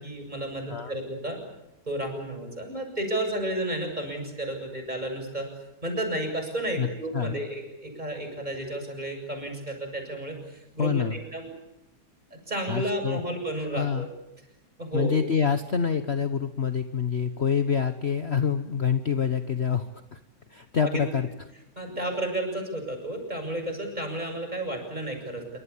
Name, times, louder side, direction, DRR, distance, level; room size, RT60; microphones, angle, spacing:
voice 1, 0.0-1.4 1.9-5.5 5.8-11.5 12.3-14.1 14.8-15.2 20.8-21.0 21.8-25.6, right 1 dB, 25° right, 4 dB, 7.5 m, -32 dB
voice 2, 10.8-11.2 12.7-13.2 13.7-14.1 14.9-20.2 20.5-21.3, left 7 dB, 40° left, 9 dB, 1.3 m, -26 dB
27.5 x 25.0 x 8.5 m, 0.89 s
omnidirectional pair, 1.8 m